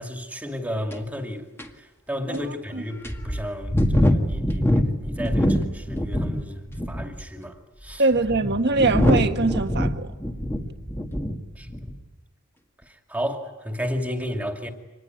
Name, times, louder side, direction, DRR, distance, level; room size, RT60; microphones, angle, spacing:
voice 1, 0.0-1.5 1.8-8.0 10.6-10.7 11.6-11.9 12.9-14.7, equal, 5° right, 2.4 m, -33 dB
sound 1, 0.9-1.0 1.6-1.7 2.3-2.4 3.0-6.4 6.7-7.2 7.9-11.4 11.7-12.0, equal, 10° left, 1.8 m, -23 dB
voice 2, 2.3-2.8 8.0-10.1, right 3 dB, 50° right, 1.5 m, -23 dB
25.5 x 20.0 x 9.5 m
head